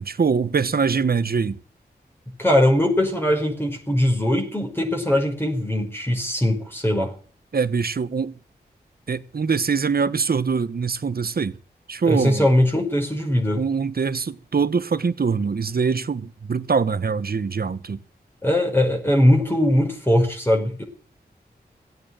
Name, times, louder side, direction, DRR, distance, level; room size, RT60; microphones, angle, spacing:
voice 1, 0.0-1.6 7.5-8.3 9.1-11.6 11.9-12.5 13.6-18.0, right 5 dB, 60° right, 1.2 m, -23 dB
voice 2, 2.4-7.1 12.1-13.6 18.4-20.8, left 1 dB, 15° left, 5.3 m, -20 dB
16.0 x 9.0 x 9.0 m
wide cardioid pair, 65°, 17 cm